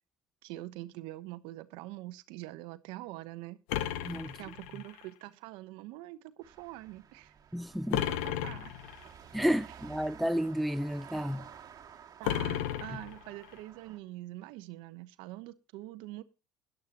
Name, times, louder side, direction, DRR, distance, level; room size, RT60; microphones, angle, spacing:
voice 1, 0.4-3.6 4.3-7.4 7.9-8.7 12.2-16.2, right 17 dB, 70° right, 1.0 m, -44 dB
sound 1, 3.7-5.1 7.9-9.1 12.2-13.6, left 12 dB, 75° left, 0.9 m, -34 dB
voice 2, 4.0-4.4 7.5-8.0 9.3-11.4, equal, ahead, 0.5 m, -31 dB
sound 2, 6.4-14.0, right 8 dB, 40° right, 1.9 m, -53 dB
18.0 x 11.0 x 2.9 m
supercardioid pair, 85°, 9 cm